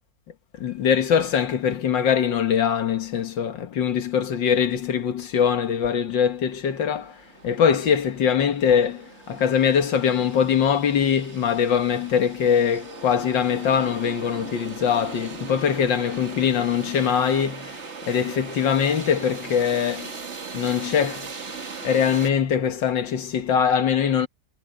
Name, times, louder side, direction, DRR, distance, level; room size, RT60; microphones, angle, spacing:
voice 1, 0.6-7.2 7.4-17.8 18.1-20.1 20.5-21.3 21.8-24.3, left 7 dB, 80° left, 2.1 m, -22 dB
sound 1, 6.3-6.4 6.7-22.3, right 5 dB, 40° right, 1.8 m, -39 dB
omnidirectional pair, 2.0 m